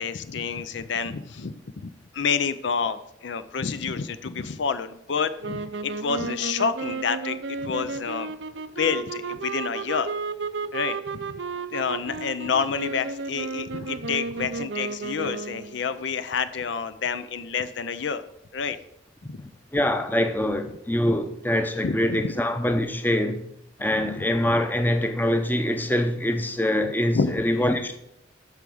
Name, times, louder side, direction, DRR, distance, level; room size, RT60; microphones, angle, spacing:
voice 1, 0.0-1.5 1.8-8.3 8.8-10.1 10.7-11.3 11.7-18.2 18.5-18.8 19.2-19.4 21.8-22.3 23.9-24.2 27.1-27.4, left 5 dB, 65° left, 0.5 m, -28 dB
sound 1, 5.4-15.8, right 4 dB, 65° right, 0.6 m, -33 dB
voice 2, 19.7-23.4 23.8-28.0, left 1 dB, 10° left, 0.7 m, -24 dB
12.5 x 4.8 x 6.9 m
head